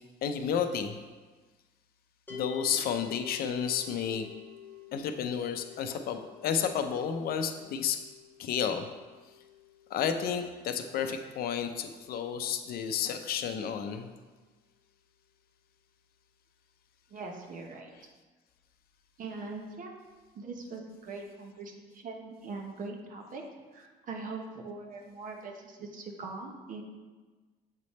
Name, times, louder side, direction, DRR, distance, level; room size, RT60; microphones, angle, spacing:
voice 1, 0.2-1.0 2.3-4.3 4.9-8.0 8.4-8.9 9.9-14.1, left 7 dB, 65° left, 7 dB, 0.5 m, -31 dB
sound 1, 2.3-13.4, left 8 dB, 10° left, 1.1 m, -51 dB
voice 2, 17.1-17.9 19.2-19.9 20.3-23.4 23.7-26.8, right 3 dB, 50° right, 2 dB, 1.0 m, -41 dB
7.4 x 3.2 x 4.1 m, 1.3 s
cardioid pair, 110°, 17 cm